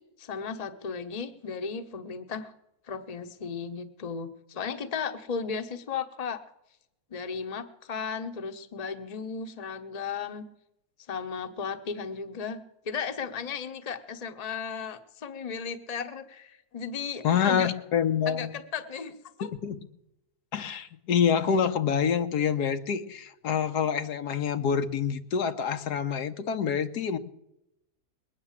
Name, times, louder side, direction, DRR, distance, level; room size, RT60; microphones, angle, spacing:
voice 1, 0.2-2.5 2.8-6.4 7.1-10.5 11.1-12.6 12.8-17.7 18.3-19.1 19.4-19.5, left 6 dB, 30° left, 8 dB, 0.9 m, -35 dB
voice 2, 17.2-18.5 19.4-19.8 20.5-27.2, left 7 dB, 85° left, 9 dB, 1.5 m, -27 dB
21.0 x 9.3 x 7.3 m, 0.85 s
omnidirectional pair, 1.7 m